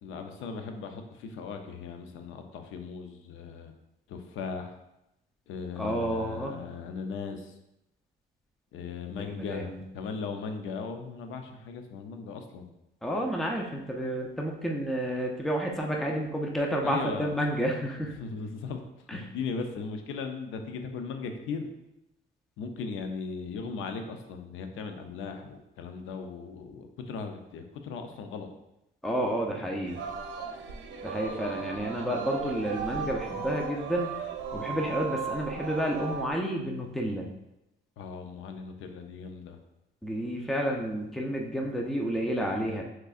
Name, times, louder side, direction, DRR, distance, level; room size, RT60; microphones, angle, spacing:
voice 1, 0.0-3.7 4.1-4.7 5.5-7.5 8.7-12.7 16.8-17.4 18.2-18.8 19.1-21.7 22.6-28.5 38.0-39.6, left 5 dB, 85° left, 6 dB, 0.6 m, -38 dB
voice 2, 5.8-6.6 9.1-9.8 13.0-18.1 19.1-19.3 29.0-30.0 31.0-34.1 34.5-37.3 40.0-42.8, equal, ahead, 0 dB, 0.6 m, -30 dB
Singing, 29.9-36.3, right 5 dB, 75° right, 0.7 m, -36 dB
5.4 x 3.7 x 2.5 m, 0.88 s
cardioid pair, 90°, 20 cm